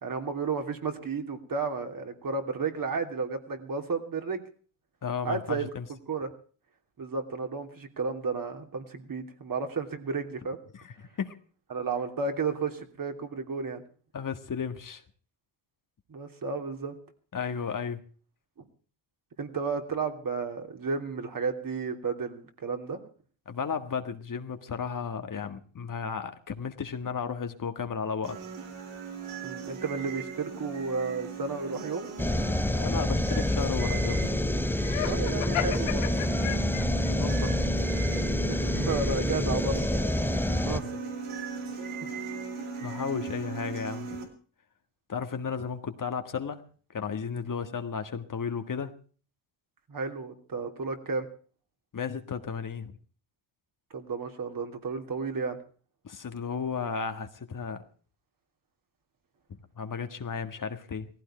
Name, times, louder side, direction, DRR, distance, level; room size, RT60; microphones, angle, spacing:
voice 1, 0.0-4.4 5.2-5.7 6.1-6.3 7.0-10.6 11.7-13.8 16.1-16.9 19.4-23.0 29.4-32.1 35.0-36.1 38.5-39.8 40.6-40.8 42.6-42.7 49.9-51.3 53.9-55.6, right 4 dB, 45° right, 5 dB, 3.1 m, -32 dB
voice 2, 5.0-5.9 10.7-11.3 14.1-15.0 17.3-18.0 23.5-28.4 32.7-34.3 37.1-37.8 40.7-41.0 42.8-44.2 45.1-46.6 46.9-48.9 51.9-52.9 56.0-57.8 59.5-61.1, left 6 dB, 40° left, 8 dB, 1.8 m, -34 dB
sound 1, 28.2-44.2, right 5 dB, 80° right, 3.8 m, -38 dB
sound 2, 32.2-40.8, left 1 dB, 5° left, 0.7 m, -27 dB
Laughter, 34.8-37.1, left 11 dB, 80° left, 2.2 m, -34 dB
17.5 x 15.5 x 4.4 m, 0.42 s
cardioid pair, 80°, 48 cm